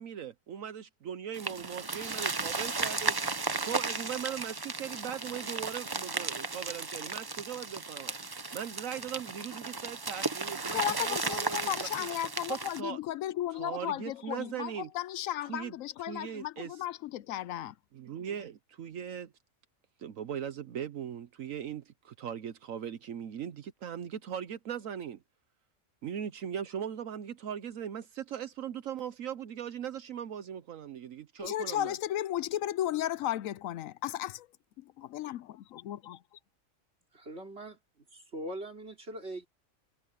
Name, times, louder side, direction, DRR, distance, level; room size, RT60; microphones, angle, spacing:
voice 1, 0.0-3.2 3.6-8.1 8.5-12.1 12.5-13.0 13.5-14.9 15.4-16.9 17.9-19.3 20.0-25.2 26.0-32.0, right 9 dB, 75° right, 1.2 m, -39 dB
sound 1, 1.3-12.8, right 3 dB, 25° right, 0.6 m, -35 dB
voice 2, 10.7-17.7 31.4-34.5 35.0-36.2, left 12 dB, 75° left, 0.9 m, -35 dB
voice 3, 37.1-37.8 38.1-39.5, right 1 dB, 50° right, 3.8 m, -41 dB
omnidirectional pair, 1.4 m